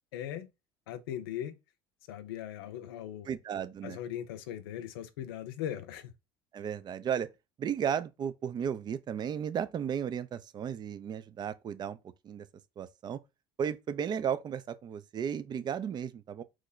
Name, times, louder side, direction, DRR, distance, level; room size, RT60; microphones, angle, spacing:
voice 1, 0.1-0.5 0.9-1.6 2.1-3.3 3.8-6.1, left 11 dB, 90° left, 0.5 m, -39 dB
voice 2, 3.3-4.0 6.5-7.3 7.6-12.0 12.2-12.5 12.8-13.2 13.6-16.4, right 8 dB, 35° right, 0.4 m, -34 dB
3.1 x 2.1 x 3.8 m
supercardioid pair, 90°, 12 cm